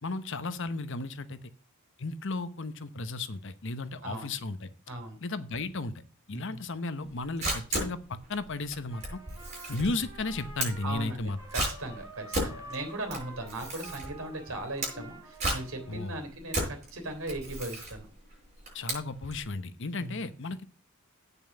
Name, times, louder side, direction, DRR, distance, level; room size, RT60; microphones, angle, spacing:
voice 1, 0.0-1.4 2.0-4.7 5.2-5.9 6.3-8.0 8.3-9.2 9.7-11.4 15.9-16.2 18.7-20.7, left 3 dB, 55° left, 13 dB, 0.9 m, -34 dB
voice 2, 4.0-4.3 4.9-5.2 6.3-6.6 10.8-18.1 20.0-20.2, right 1 dB, 65° right, 5 dB, 3.4 m, -38 dB
Camera, 7.0-19.4, right 1 dB, 35° right, 6.6 m, -35 dB
Trumpet, 8.9-16.2, right 2 dB, 15° right, 3.6 m, -49 dB
8.8 x 6.9 x 7.2 m, 0.37 s
head